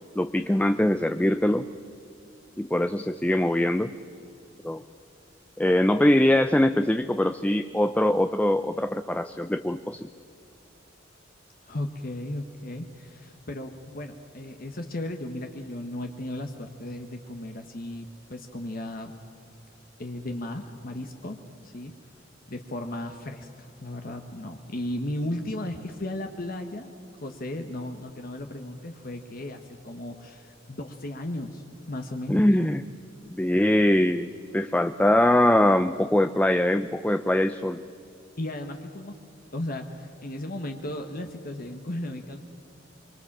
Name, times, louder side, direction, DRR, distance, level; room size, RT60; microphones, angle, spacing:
voice 1, 0.2-1.7 2.6-3.9 4.6-4.8 5.6-10.1 32.3-32.8 33.3-37.8, left 1 dB, 10° left, 10 dB, 0.5 m, -22 dB
voice 2, 11.6-19.1 20.0-21.9 22.5-26.9 27.2-32.5 38.4-39.2 39.5-42.4, left 1 dB, 50° left, 4 dB, 1.3 m, -35 dB
24.5 x 24.0 x 7.4 m, 2.6 s
head